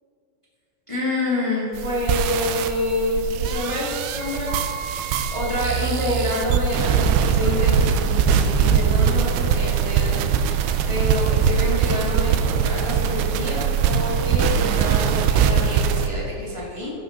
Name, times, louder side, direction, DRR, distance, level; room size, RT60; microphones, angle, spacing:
voice 1, 0.9-4.8 5.3-16.9, left 1 dB, 45° left, -7 dB, 0.4 m, -27 dB
sound 1, 1.7-16.1, right 7 dB, 85° right, 2.6 m, -21 dB
16.5 x 5.9 x 5.1 m, 2.7 s
omnidirectional pair, 4.4 m